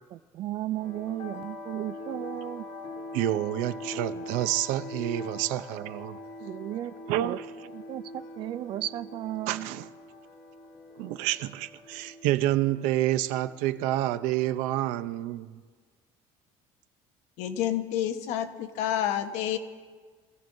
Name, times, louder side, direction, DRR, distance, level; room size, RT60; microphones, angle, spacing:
voice 1, 0.1-2.7 6.4-6.9 7.2-7.4 7.7-9.7, right 13 dB, 40° right, 0.4 m, -35 dB
sound 1, 0.7-14.8, left 1 dB, 45° left, 2.6 m, -43 dB
voice 2, 3.1-6.2 7.1-7.5 9.5-9.9 11.0-15.6, right 14 dB, 80° right, 0.6 m, -28 dB
voice 3, 17.4-19.6, left 11 dB, 65° left, 1.1 m, -29 dB
26.5 x 15.5 x 2.7 m
cardioid pair, 175°, 13 cm